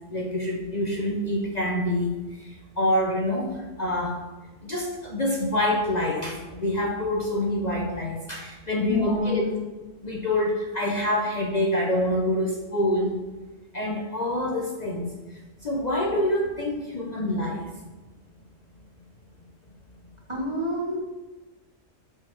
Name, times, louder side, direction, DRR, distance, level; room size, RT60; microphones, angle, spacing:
voice 1, 0.1-2.1 2.4-4.2 4.6-9.4 10.0-13.2 13.7-15.1 15.6-17.7, left 1 dB, 40° left, -1 dB, 0.9 m, -26 dB
voice 2, 8.8-9.5 20.3-21.0, left 1 dB, 25° right, -1 dB, 1.0 m, -27 dB
7.8 x 4.8 x 4.5 m, 1.2 s
omnidirectional pair, 1.3 m